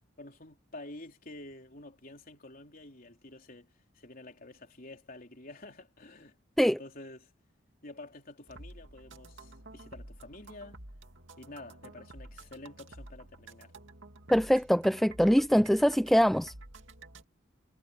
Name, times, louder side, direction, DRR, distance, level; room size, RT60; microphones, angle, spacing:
voice 1, 0.2-6.4 6.6-7.3 7.8-10.8 11.4-13.7, left 2 dB, 45° left, 3.9 m, -49 dB
sound 1, 8.5-17.2, right 2 dB, 70° right, 2.4 m, -50 dB
voice 2, 14.3-16.5, equal, ahead, 0.5 m, -23 dB
head